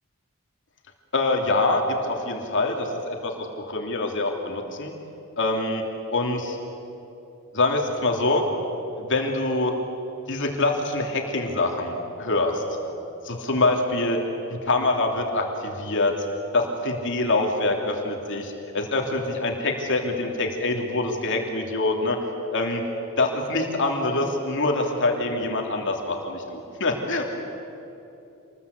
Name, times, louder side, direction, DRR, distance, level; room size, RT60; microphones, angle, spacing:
voice 1, 1.1-4.9 5.4-5.8 6.1-6.6 7.5-8.4 9.0-9.7 10.3-12.6 13.2-14.2 14.5-16.1 16.5-22.2 22.5-22.8 23.2-27.2, left 2 dB, 55° left, 2 dB, 3.0 m, -25 dB
27.5 x 21.0 x 8.4 m, 2.9 s
head